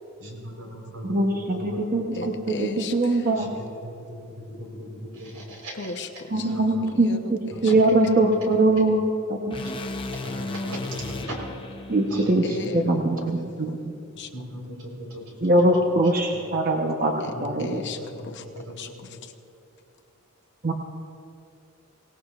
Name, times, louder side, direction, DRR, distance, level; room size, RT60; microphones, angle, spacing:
voice 1, 0.2-2.3 3.4-5.9 6.3-6.8 7.5-8.0 8.8-8.9 10.2-11.4 12.1-12.7 14.3-15.2 17.3-17.7 18.0-18.1 18.4-18.9, equal, 75° right, -1 dB, 4.1 m, -38 dB
voice 2, 1.0-2.3 2.6-3.5 6.3-9.0 9.3-9.6 11.9-13.9 15.4-17.8 20.6-20.7, right 2 dB, 40° right, 1 dB, 0.9 m, -22 dB
voice 3, 2.1-3.3 5.7-6.5 6.9-7.7 12.4-13.3 13.7-13.8 14.2-14.3 17.2-17.3 17.6-19.3, left 3 dB, 55° left, 5 dB, 0.9 m, -36 dB
sound 1, 9.5-13.7, left 2 dB, 25° left, 0.7 m, -36 dB
23.5 x 18.0 x 2.5 m, 2.6 s
head